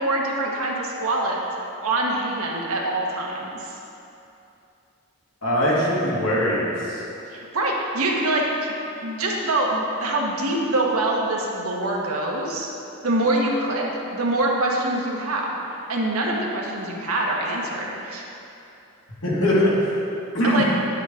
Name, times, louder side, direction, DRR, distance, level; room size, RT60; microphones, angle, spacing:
voice 1, 0.0-1.4 1.8-3.7 7.3-8.7 9.0-12.7 13.0-13.8 14.1-15.6 15.9-18.2 20.4-20.6, right 2 dB, 80° right, -2 dB, 1.4 m, -24 dB
voice 2, 5.4-7.0 19.2-19.7 20.3-20.6, equal, 65° left, -6 dB, 2.3 m, -21 dB
10.5 x 8.1 x 3.8 m, 2.8 s
head